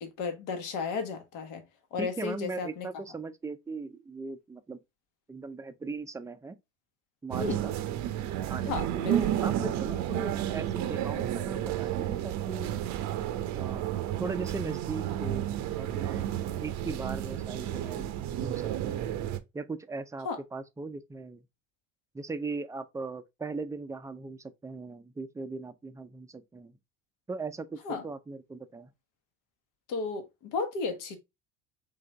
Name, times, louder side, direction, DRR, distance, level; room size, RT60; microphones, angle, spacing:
voice 1, 0.0-1.6 1.9-2.9 7.4-7.6 8.7-9.2 20.2-20.4 27.8-28.0 29.9-31.2, left 4 dB, 65° left, 1.1 m, -34 dB
voice 2, 2.0-4.8 5.3-6.6 7.2-7.7 8.5-12.8 13.5-13.9 14.2-15.5 15.8-16.3 16.6-18.1 18.4-19.0 19.5-21.4 22.1-26.8 27.3-28.9, right 3 dB, 10° right, 0.4 m, -38 dB
sound 1, 7.3-19.4, right 11 dB, 55° right, 0.6 m, -31 dB
3.7 x 3.3 x 3.2 m
supercardioid pair, 95°, 33 cm